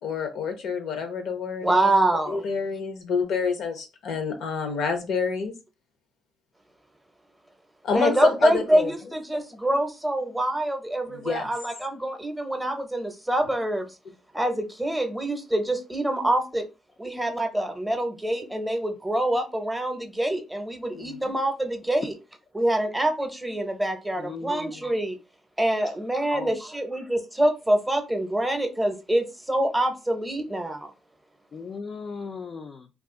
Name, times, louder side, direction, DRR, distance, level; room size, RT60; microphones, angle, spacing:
voice 1, 0.0-1.9 2.3-5.5 7.8-8.9 11.1-11.5 20.9-21.2, left 5 dB, 75° left, 0.7 m, -28 dB
voice 2, 1.6-2.4 7.9-13.9 14.3-16.7 17.0-22.1 22.5-25.2 25.6-30.9, right 1 dB, 5° right, 0.7 m, -25 dB
voice 3, 24.2-24.8 25.8-26.0 26.3-26.5 31.5-32.9, left 5 dB, 45° left, 0.4 m, -37 dB
2.4 x 2.3 x 3.6 m
cardioid pair, 90°, 0 cm